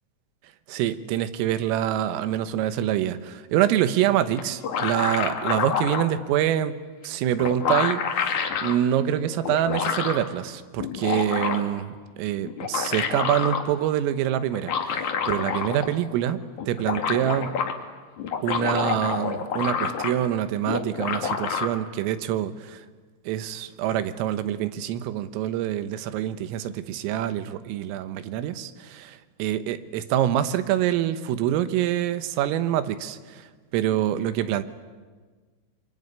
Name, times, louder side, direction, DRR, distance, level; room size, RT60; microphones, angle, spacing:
voice 1, 0.7-6.8 7.0-17.6 18.4-22.9 23.3-29.1 29.4-33.5 33.7-34.6, right 11 dB, 80° right, 11 dB, 3.7 m, -26 dB
sound 1, 4.4-6.1 7.0-7.1 7.4-8.7 9.4-10.2 10.8-11.8 12.5-13.6 14.5-16.0 16.3-16.4 16.6-17.7 18.2-20.3 20.6-21.7, left 6 dB, 55° left, 2.4 m, -27 dB
24.5 x 24.5 x 9.7 m, 1.5 s
omnidirectional pair, 5.9 m